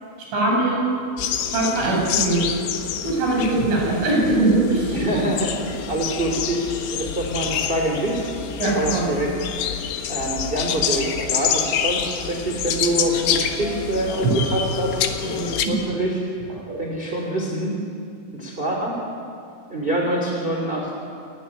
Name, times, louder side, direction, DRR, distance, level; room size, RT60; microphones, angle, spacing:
voice 1, 0.3-0.9 1.5-2.5 3.0-5.0 8.6-9.1 14.2-14.3 15.2-15.8, right 2 dB, 90° right, -2 dB, 10.0 m, -21 dB
sound 1, 1.2-15.7, left 8 dB, 80° left, 3.8 m, -27 dB
voice 2, 4.9-9.3 9.6-9.8 10.1-15.0 15.6-16.2 16.8-17.8 18.3-19.0 19.7-20.9, right 1 dB, 15° right, -1 dB, 2.7 m, -25 dB
30.0 x 20.5 x 9.8 m, 2.4 s
omnidirectional pair, 5.3 m